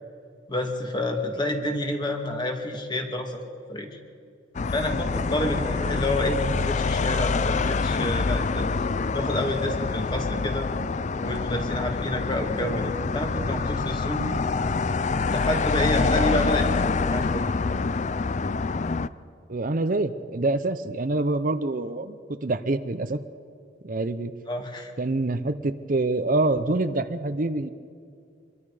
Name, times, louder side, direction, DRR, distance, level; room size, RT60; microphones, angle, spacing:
voice 1, 0.5-3.4 3.7-3.9 4.7-8.7 9.1-10.7 11.2-14.4 15.3-16.7 17.0-17.5 24.5-24.9, left 1 dB, 25° left, 3 dB, 2.2 m, -29 dB
sound 1, 4.5-19.1, left 4 dB, 40° left, 0.5 m, -26 dB
voice 2, 19.5-23.2 23.8-24.3 25.0-27.7, right 2 dB, 50° right, 10 dB, 0.7 m, -26 dB
25.5 x 22.5 x 5.0 m, 2.3 s
head